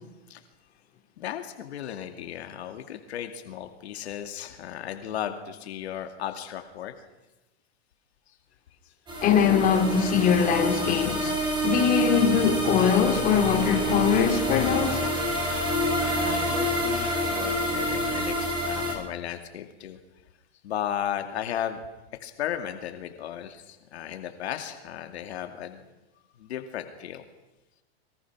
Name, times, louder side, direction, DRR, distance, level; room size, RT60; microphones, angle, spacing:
voice 1, 1.2-6.9 8.3-8.4 8.9-9.0 15.3-20.0 20.6-21.8 22.2-25.9 26.4-27.2, left 10 dB, 80° left, 2.4 m, -35 dB
sound 1, 9.1-18.9, right 1 dB, 15° right, 5.6 m, -27 dB
voice 2, 9.2-11.3 11.6-15.0, left 7 dB, 25° left, 4.2 m, -22 dB
25.5 x 23.0 x 6.2 m
supercardioid pair, 155°, 32 cm